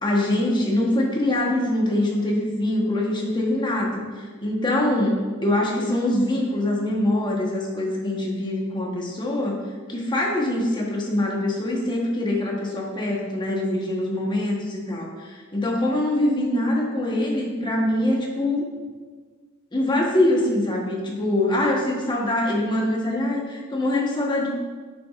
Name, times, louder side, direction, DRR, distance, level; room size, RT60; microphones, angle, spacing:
voice 1, 0.0-9.6 9.9-14.6 14.9-18.7 19.7-24.5, left 1 dB, 25° left, -2 dB, 1.2 m, -24 dB
9.8 x 5.9 x 2.5 m, 1.5 s
head